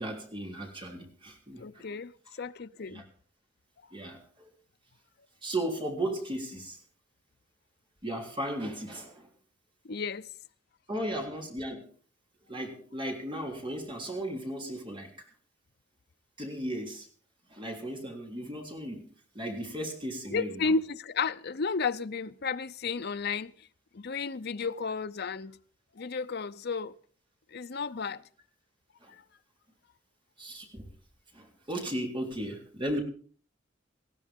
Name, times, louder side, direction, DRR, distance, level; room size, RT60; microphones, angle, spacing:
voice 1, 0.0-1.9 2.8-3.0 3.9-4.5 5.4-6.8 8.0-9.3 10.9-11.9 12.5-15.1 16.4-17.1 17.5-19.1 19.3-20.7 29.0-29.1 30.4-30.9 31.3-33.0, right 1 dB, 25° right, 3.5 m, -36 dB
voice 2, 1.6-2.1 2.4-3.0 9.8-10.3 20.3-23.5 23.9-25.6 26.0-26.9 27.5-28.2, left 4 dB, 55° left, 0.6 m, -32 dB
19.5 x 15.5 x 3.6 m
head